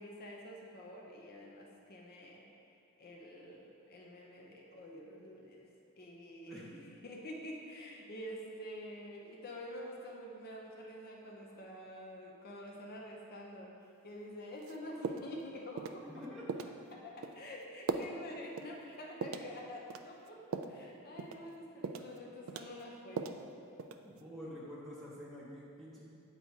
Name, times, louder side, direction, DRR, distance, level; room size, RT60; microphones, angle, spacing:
voice 1, 0.0-2.5 3.0-5.6 6.0-6.6 7.0-16.1 16.9-23.4, equal, 45° left, -1 dB, 0.6 m, -48 dB
voice 2, 6.5-6.8 16.0-16.5 24.0-26.1, equal, ahead, -8 dB, 0.7 m, -48 dB
sound 1, 14.6-14.8 15.0-15.4 15.8-16.0 16.5-16.7 17.2-17.4 17.9-18.2 18.6-18.7 19.2-19.5 19.9-20.8 21.2-21.4 21.8-22.2 22.5-23.4 23.8-24.2, right 5 dB, 65° right, 0.3 m, -39 dB
8.1 x 2.7 x 4.5 m, 2.6 s
head